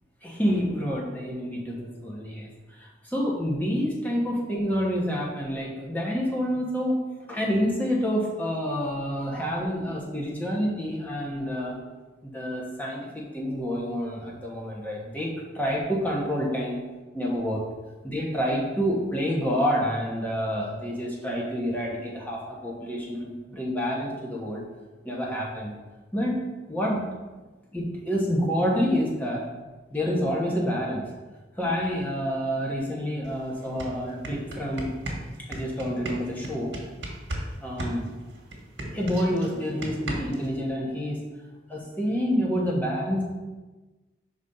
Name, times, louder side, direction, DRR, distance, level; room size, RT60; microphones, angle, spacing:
voice 1, 0.2-7.0 7.3-11.8 12.2-15.3 15.5-16.8 17.1-17.6 18.0-24.6 25.0-25.7 26.1-27.1 27.7-29.4 29.9-31.0 31.6-34.9 35.5-36.7 37.6-38.1 38.8-41.2 41.7-43.2, equal, 10° left, -4 dB, 1.1 m, -28 dB
sound 1, 33.2-33.3 33.6-37.5 37.8-40.5, right 1 dB, 70° right, 1.4 m, -34 dB
5.2 x 4.0 x 5.5 m, 1.2 s
head